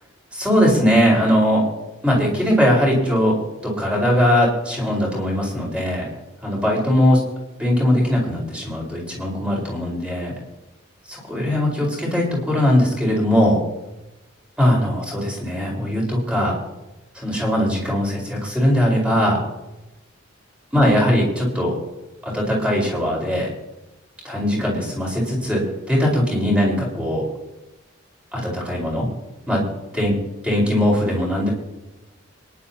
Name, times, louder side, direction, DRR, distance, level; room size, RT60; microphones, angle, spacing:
voice 1, 0.3-1.6 2.0-3.4 3.6-6.1 6.4-7.2 7.6-10.3 11.1-13.6 14.6-16.6 17.1-19.4 20.7-21.7 22.2-23.5 24.2-27.3 28.3-29.1 29.5-29.7 29.9-30.2 30.4-31.5, equal, 5° right, -3 dB, 4.7 m, -20 dB
25.5 x 11.0 x 2.9 m, 1.0 s
head